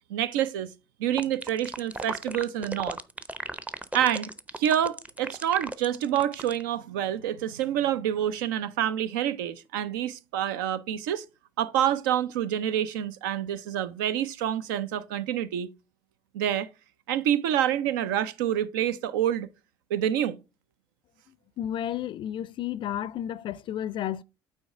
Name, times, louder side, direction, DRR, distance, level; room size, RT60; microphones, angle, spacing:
voice 1, 0.1-0.7 1.0-3.0 3.9-11.2 11.6-15.7 16.3-16.7 17.1-19.5 19.9-20.4, right 10 dB, 70° right, 0.6 m, -27 dB
sound 1, 1.2-6.6, right 2 dB, 10° right, 0.7 m, -35 dB
voice 2, 21.6-24.2, left 11 dB, 45° left, 0.4 m, -32 dB
8.8 x 4.5 x 3.6 m
figure-of-eight pair, 55°, 11 cm